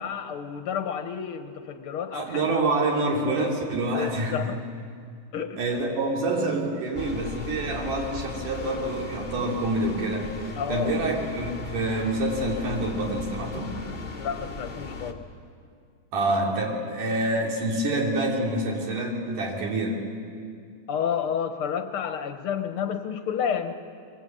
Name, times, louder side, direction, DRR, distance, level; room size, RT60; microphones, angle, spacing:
voice 1, 0.0-2.6 3.9-4.6 5.3-5.6 10.6-11.0 14.2-15.2 20.9-23.7, left 7 dB, 60° left, 8 dB, 1.5 m, -30 dB
voice 2, 2.1-4.6 5.6-10.3 10.7-13.7 16.1-20.0, right 2 dB, 85° right, -1 dB, 4.5 m, -27 dB
sound 1, 6.9-15.1, left 3 dB, 40° left, 0.6 m, -37 dB
24.0 x 23.5 x 8.6 m, 2.2 s
omnidirectional pair, 3.6 m